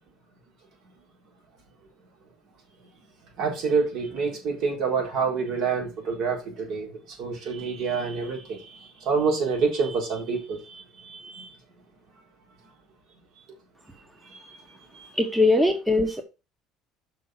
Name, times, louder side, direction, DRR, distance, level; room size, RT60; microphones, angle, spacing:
voice 1, 3.4-11.5 14.2-14.6 14.9-15.1, right 5 dB, 60° right, 1 dB, 4.3 m, -28 dB
voice 2, 15.2-16.2, left 2 dB, 5° right, 6 dB, 1.2 m, -21 dB
6.2 x 5.8 x 5.9 m, 0.29 s
cardioid pair, 125°, 0 cm